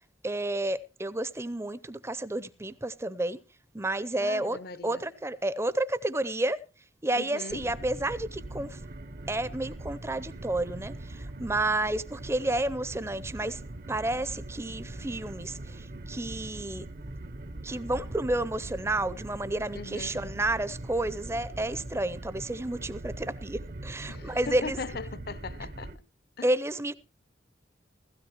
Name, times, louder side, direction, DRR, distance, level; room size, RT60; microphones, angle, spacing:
voice 1, 0.2-3.4 3.7-4.6 4.8-6.6 7.0-8.8 9.3-13.6 13.9-16.9 17.6-24.8 26.4-26.9, right 1 dB, 15° right, 0.6 m, -31 dB
voice 2, 4.2-5.0 7.1-7.6 19.7-20.3 24.1-25.9 26.4-26.5, left 4 dB, 55° left, 0.7 m, -39 dB
sound 1, 7.5-26.0, right 1 dB, 50° right, 0.8 m, -41 dB
16.0 x 16.0 x 3.0 m
head